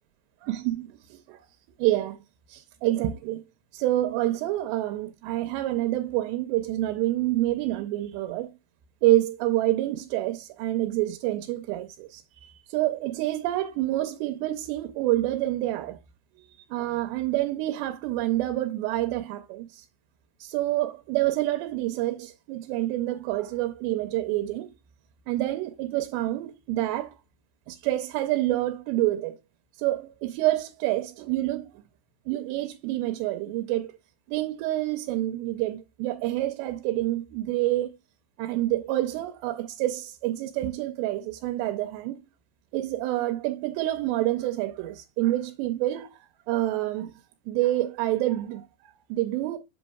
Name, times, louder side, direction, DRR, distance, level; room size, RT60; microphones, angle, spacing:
voice 1, 0.4-1.5 1.8-2.2 2.5-3.4 3.7-8.5 9.0-16.0 16.7-19.9 20.4-24.7 25.3-27.2 27.7-29.4 29.8-31.8 32.3-33.9 34.3-37.9 38.4-42.2 42.7-46.2 46.5-47.1 47.5-49.6, right 15 dB, 90° right, 2.8 m, -27 dB
8.0 x 6.2 x 2.2 m
omnidirectional pair, 4.9 m